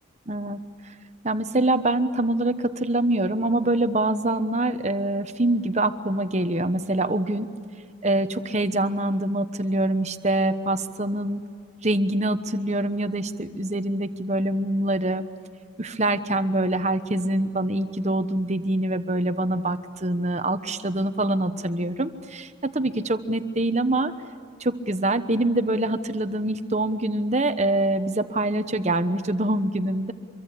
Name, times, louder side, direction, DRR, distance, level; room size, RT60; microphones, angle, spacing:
voice 1, 0.3-0.6 1.2-7.5 8.0-11.4 11.8-15.2 15.8-24.1 24.6-30.1, right 1 dB, 35° right, 10 dB, 1.1 m, -25 dB
25.5 x 23.5 x 8.3 m, 2.3 s
head